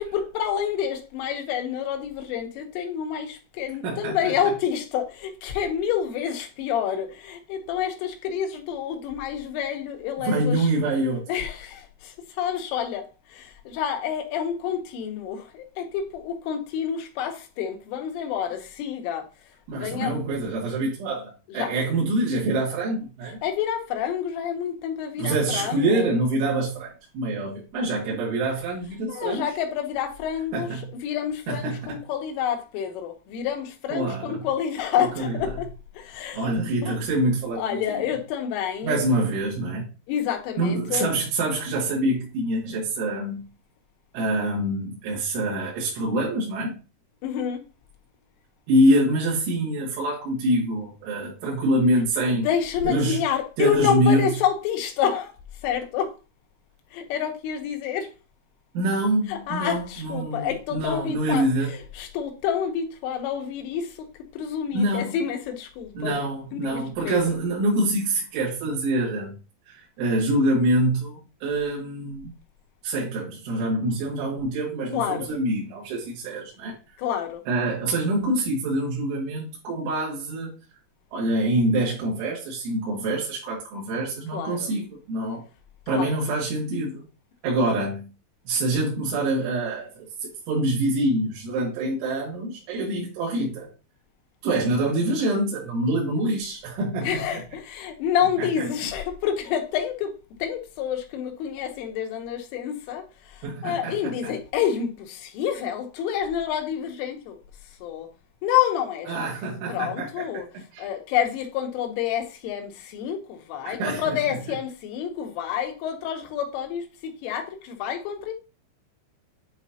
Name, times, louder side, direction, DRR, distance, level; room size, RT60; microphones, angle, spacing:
voice 1, 0.0-10.7 11.3-20.2 21.5-21.8 23.4-26.1 29.1-36.5 36.8-37.0 37.6-39.0 40.1-41.1 47.2-47.6 52.3-56.2 56.9-58.1 59.3-66.2 66.5-67.2 74.9-75.3 77.0-77.4 84.3-84.7 85.9-86.2 97.0-107.4 107.7-108.1 108.4-109.2 109.7-110.5 110.8-118.3, left 9 dB, 85° left, 3.7 m, -28 dB
voice 2, 3.8-4.2 10.2-11.2 19.7-23.4 25.2-29.4 30.5-30.6 31.5-31.8 33.9-34.4 35.2-35.4 36.3-37.6 38.8-39.8 40.6-43.5 44.1-46.8 48.7-52.5 52.9-53.2 53.6-54.3 58.7-61.7 64.7-65.2 66.0-69.4 69.7-72.3 72.8-76.8 77.5-80.6 81.1-85.4 85.9-87.0 87.4-88.1 88.5-93.7 94.4-97.4 103.4-104.0 104.2-104.3 109.1-110.4 110.7-110.9 113.6-114.2, right 1 dB, 75° right, 4.4 m, -25 dB
9.6 x 4.1 x 2.8 m
omnidirectional pair, 5.6 m